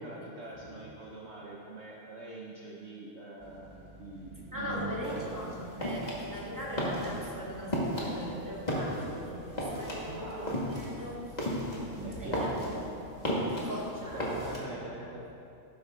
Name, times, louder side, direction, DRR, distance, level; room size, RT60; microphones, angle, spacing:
voice 1, 0.0-5.3 10.0-10.5 12.0-12.6 14.0-15.3, right 2 dB, 55° right, -3 dB, 1.3 m, -43 dB
sound 1, 3.4-12.8, right 2 dB, 30° right, 0.6 m, -47 dB
voice 2, 4.5-11.4 12.2-13.2 13.5-14.4 15.0-15.1, equal, 15° right, -5 dB, 2.1 m, -40 dB
sound 2, 5.0-14.6, equal, 30° left, 2.1 m, -34 dB
14.0 x 12.0 x 3.8 m, 2.9 s
omnidirectional pair, 1.5 m